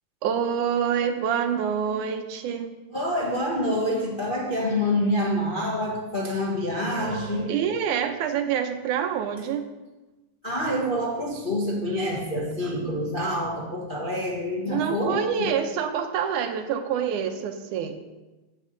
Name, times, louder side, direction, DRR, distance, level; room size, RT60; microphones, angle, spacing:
voice 1, 0.2-2.7 7.5-9.7 12.6-12.7 14.7-18.0, right 8 dB, 80° right, 7 dB, 2.3 m, -26 dB
voice 2, 2.9-7.5 10.4-15.5, left 1 dB, 55° left, -4 dB, 0.5 m, -27 dB
11.0 x 4.7 x 8.1 m, 1.1 s
omnidirectional pair, 3.5 m